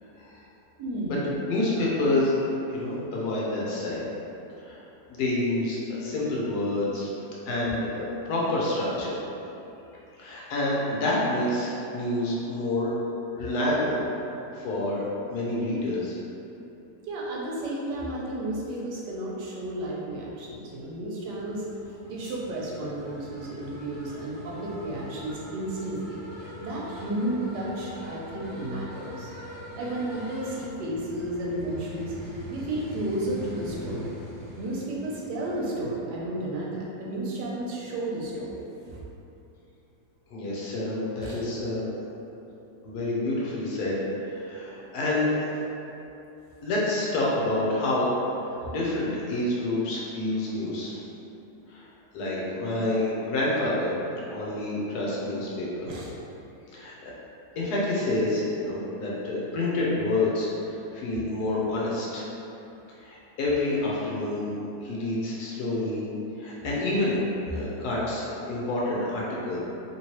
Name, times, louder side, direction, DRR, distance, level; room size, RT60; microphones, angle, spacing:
voice 1, 0.8-1.4 17.0-21.6 22.0-26.2 26.6-29.3 29.7-32.1 32.5-34.1 34.6-38.6 38.9-39.0 41.2-41.4 55.8-56.1, right 1 dB, 80° right, -4 dB, 1.2 m, -32 dB
voice 2, 1.4-4.1 4.6-4.8 5.1-7.1 7.5-9.2 10.2-12.9 13.3-14.0 14.5-16.2 40.3-41.9 42.8-44.0 44.2-45.4 46.6-48.1 48.4-51.0 51.7-51.9 52.1-55.8 56.7-57.1 57.6-62.3 63.0-64.5 64.8-66.1 66.4-67.2 67.5-69.6, left 2 dB, 75° left, -5 dB, 1.1 m, -28 dB
sound 1, 21.2-35.8, left 1 dB, 10° left, 0.6 m, -43 dB
3.0 x 3.0 x 2.9 m, 2.9 s
omnidirectional pair, 1.8 m